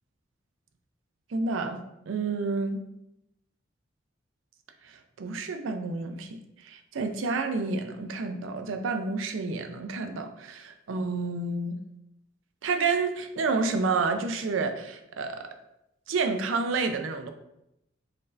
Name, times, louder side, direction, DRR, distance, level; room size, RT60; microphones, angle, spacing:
voice 1, 1.3-2.8 4.8-11.8 12.6-15.6 16.1-17.3, right 4 dB, 90° right, 8 dB, 0.4 m, -30 dB
4.1 x 2.6 x 3.1 m, 0.85 s
head